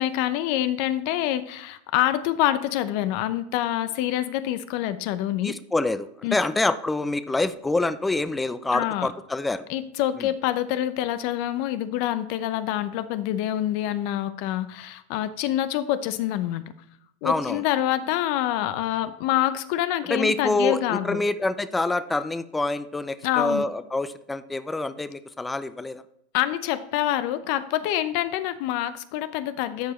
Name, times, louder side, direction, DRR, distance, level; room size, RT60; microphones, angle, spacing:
voice 1, 0.0-5.5 6.2-6.4 8.7-9.1 9.7-16.6 17.2-21.2 23.2-23.7 26.3-29.9, left 13 dB, 60° left, 13 dB, 0.6 m, -26 dB
voice 2, 5.4-9.6 10.2-10.3 17.2-17.6 20.1-26.0, left 2 dB, 10° left, 13 dB, 0.4 m, -26 dB
13.0 x 4.7 x 3.1 m, 0.77 s
hypercardioid pair, 110°, 0 cm